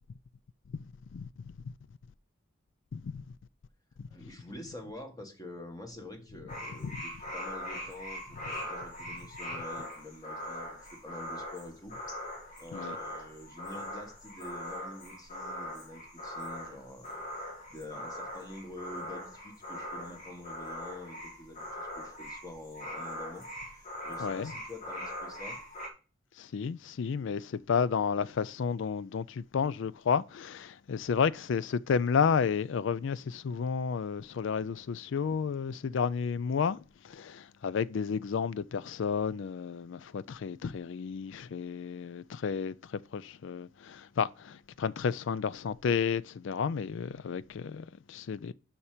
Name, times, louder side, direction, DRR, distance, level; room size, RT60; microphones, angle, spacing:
voice 1, 0.7-1.3 1.6-1.7 2.9-3.2 4.0-4.3 6.8-7.0 12.7-13.0 24.2-24.5 26.4-48.5, left 6 dB, 60° left, 0.4 m, -32 dB
voice 2, 4.1-11.9 12.6-25.6, left 1 dB, 20° left, 1.7 m, -47 dB
sound 1, 6.5-25.9, left 1 dB, 40° left, 2.2 m, -41 dB
7.0 x 5.8 x 5.0 m
head